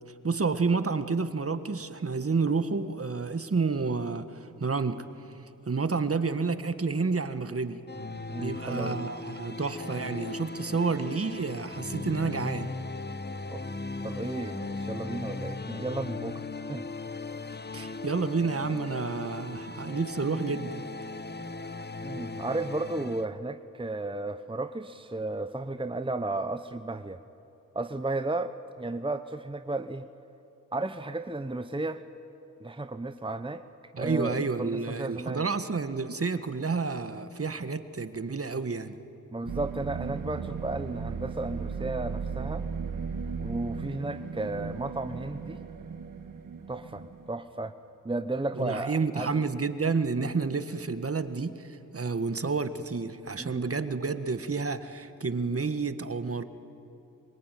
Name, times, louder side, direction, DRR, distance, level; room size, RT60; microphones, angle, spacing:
voice 1, 0.2-5.0 5.6-7.8 8.4-12.7 17.7-20.8 33.9-39.0 48.5-56.4, right 4 dB, 45° right, 1.7 m, -30 dB
sound 1, 7.9-23.2, left 3 dB, 30° left, 1.2 m, -38 dB
voice 2, 8.3-9.0 13.5-13.7 14.0-16.4 16.7-16.9 22.0-27.2 27.7-30.1 30.7-32.0 32.6-33.6 34.0-35.4 39.3-42.7 43.4-45.6 46.7-47.7 48.0-49.3 53.4-53.6, right 2 dB, 15° right, 1.0 m, -34 dB
sound 2, 39.5-47.3, right 5 dB, 75° right, 1.7 m, -36 dB
26.5 x 23.5 x 9.3 m
cardioid pair, 45°, 33 cm